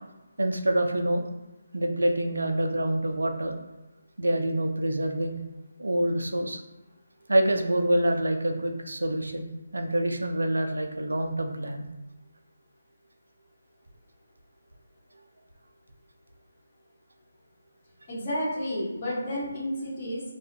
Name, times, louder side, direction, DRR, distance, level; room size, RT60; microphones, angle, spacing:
voice 1, 0.4-1.3 1.7-3.5 4.2-5.4 5.8-6.6 7.3-11.9, right 1 dB, 75° right, 5 dB, 0.3 m, -26 dB
voice 2, 18.1-20.2, equal, 30° left, -8 dB, 1.1 m, -31 dB
2.3 x 2.1 x 2.7 m, 1.1 s
figure-of-eight pair, 150°, 0 cm